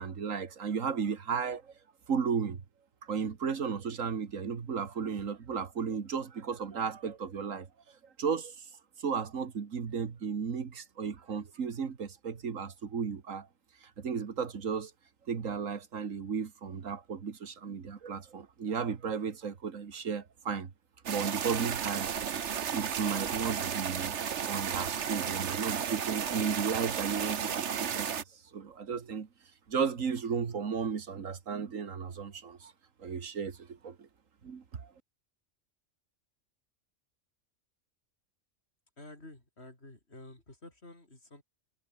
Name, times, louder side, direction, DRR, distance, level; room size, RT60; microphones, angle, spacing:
voice 1, 0.0-1.7 2.1-2.6 3.0-7.7 8.2-8.7 9.0-13.5 13.8-14.9 15.3-20.7 21.1-22.1 22.4-24.2 24.4-29.3 29.7-32.7 33.0-34.1 34.4-34.9, right 6 dB, 85° right, 2.0 m, -34 dB
sound 1, 21.1-28.2, right 8 dB, 65° right, 1.4 m, -33 dB
voice 2, 39.0-41.4, left 2 dB, 55° left, 6.0 m, -50 dB
omnidirectional pair, 1.3 m